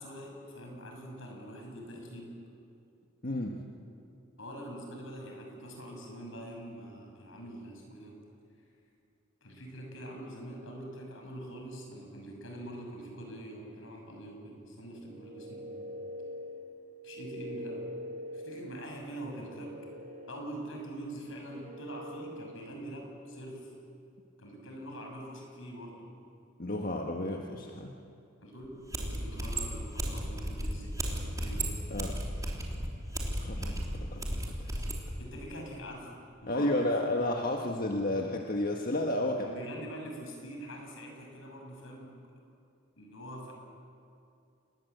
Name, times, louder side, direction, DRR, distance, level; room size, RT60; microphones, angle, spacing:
voice 1, 0.0-2.4 4.4-8.2 9.4-15.9 17.0-17.8 18.3-19.9 20.3-23.7 24.4-26.1 28.4-31.8 35.2-37.0 39.3-42.2 43.0-43.5, right 1 dB, 75° left, 1 dB, 6.5 m, -44 dB
voice 2, 3.2-3.6 26.6-27.9 31.9-32.2 33.4-34.4 34.8-34.9 36.5-39.4, left 1 dB, 45° left, 1 dB, 1.5 m, -32 dB
sound 1, 15.0-22.8, equal, 35° right, 5.3 m, -45 dB
sound 2, 28.6-28.7 28.9-35.0, right 1 dB, 15° right, 3.4 m, -34 dB
28.0 x 21.0 x 8.1 m, 2.5 s
head